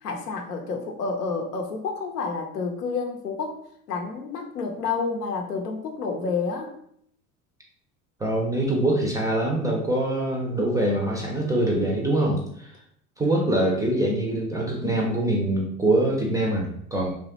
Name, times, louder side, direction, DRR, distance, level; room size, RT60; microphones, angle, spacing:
voice 1, 0.0-6.7, left 4 dB, 80° left, 3 dB, 0.7 m, -29 dB
voice 2, 8.2-12.7 13.2-17.1, right 1 dB, 10° right, -2 dB, 0.4 m, -24 dB
3.0 x 2.4 x 2.7 m, 0.68 s
figure-of-eight pair, 70°, 46 cm